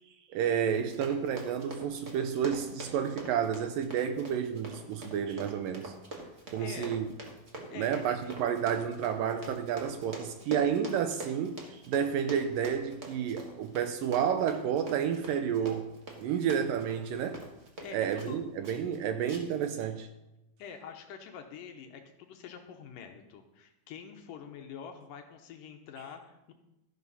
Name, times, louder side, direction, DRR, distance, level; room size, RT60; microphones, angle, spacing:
voice 1, 0.3-5.9 6.5-7.1 7.6-15.9 16.2-17.4 17.9-20.1, right 8 dB, 75° right, 2.2 m, -30 dB
Run, 0.8-18.4 18.6-19.0 19.3-19.6 20.0-20.1, right 2 dB, 40° right, 1.0 m, -44 dB
voice 2, 4.8-5.2 6.6-6.9 7.7-8.3 16.3-16.5 17.8-18.4 20.6-26.5, left 7 dB, 70° left, 2.4 m, -46 dB
13.0 x 11.0 x 4.1 m
omnidirectional pair, 4.4 m